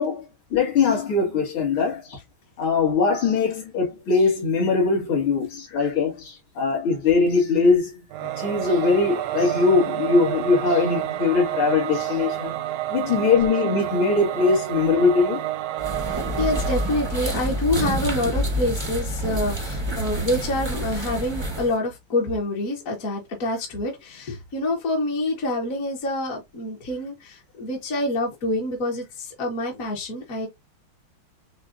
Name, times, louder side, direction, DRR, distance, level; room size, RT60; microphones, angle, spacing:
voice 1, 0.0-2.2 2.6-12.6 12.9-15.4, left 4 dB, 70° left, 2.5 m, -21 dB
Singing / Musical instrument, 8.1-18.1, right 14 dB, 75° right, 1.0 m, -30 dB
sound 1, 15.8-21.8, right 1 dB, 40° right, 0.3 m, -28 dB
voice 2, 16.0-30.5, left 1 dB, 50° left, 1.2 m, -27 dB
6.8 x 2.3 x 2.5 m
omnidirectional pair, 2.3 m